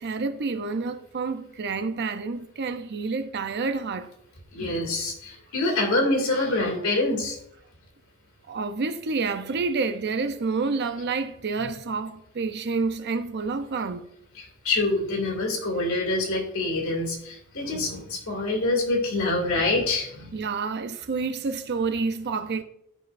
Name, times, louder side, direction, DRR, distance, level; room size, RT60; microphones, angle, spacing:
voice 1, 0.0-4.1 8.5-14.1 20.3-22.6, right 4 dB, 50° right, 0.6 m, -29 dB
voice 2, 4.5-7.4 14.4-20.3, left 2 dB, 70° left, 2.2 m, -26 dB
14.0 x 5.3 x 2.5 m
head